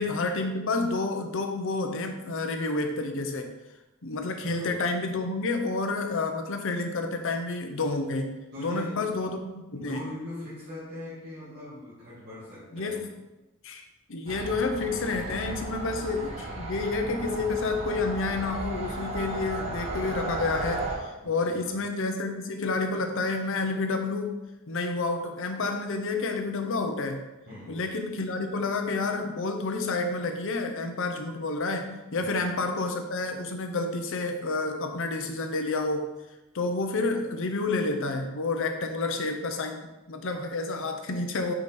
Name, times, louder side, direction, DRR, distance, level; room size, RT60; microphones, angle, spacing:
voice 1, 0.0-3.5 4.0-10.0 12.7-13.1 13.6-13.8 14.1-24.4 24.7-27.2 27.7-36.1 36.5-41.5, left 3 dB, 65° left, 5 dB, 0.7 m, -29 dB
voice 2, 8.5-9.2 9.8-13.0 21.2-21.8 27.5-27.9 32.2-32.4, left 1 dB, 50° right, -10 dB, 1.9 m, -41 dB
sound 1, 14.3-21.0, right 2 dB, 30° right, 1.1 m, -35 dB
5.0 x 4.9 x 4.2 m, 1.0 s
head